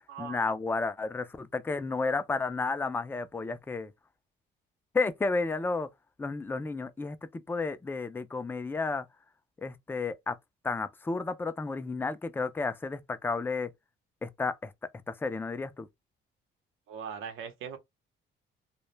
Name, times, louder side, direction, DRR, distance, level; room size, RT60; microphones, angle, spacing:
voice 1, 0.2-3.9 4.9-5.9 6.2-9.0 9.6-10.4 10.6-13.7 14.2-14.7 15.1-15.9, left 3 dB, 10° left, 0.3 m, -32 dB
voice 2, 16.9-17.8, right 7 dB, 85° right, 0.8 m, -40 dB
2.2 x 2.0 x 3.1 m
cardioid pair, 90°, 20 cm